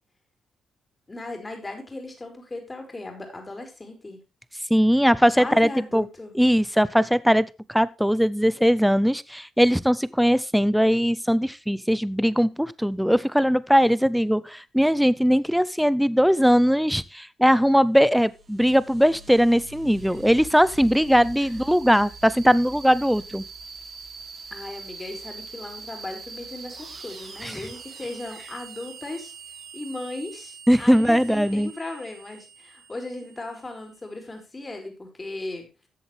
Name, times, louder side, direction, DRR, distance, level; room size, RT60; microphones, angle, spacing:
voice 1, 1.1-4.2 5.4-6.3 21.4-21.6 24.5-29.3 29.7-35.7, left 2 dB, 20° left, 4 dB, 4.3 m, -37 dB
voice 2, 4.7-6.0 6.4-23.4 27.4-27.5 30.7-31.7, equal, ahead, 18 dB, 0.6 m, -20 dB
sound 1, 17.9-34.2, right 4 dB, 45° right, 2.6 m, -43 dB
13.5 x 7.8 x 3.4 m, 0.29 s
cardioid pair, 90°, 0 cm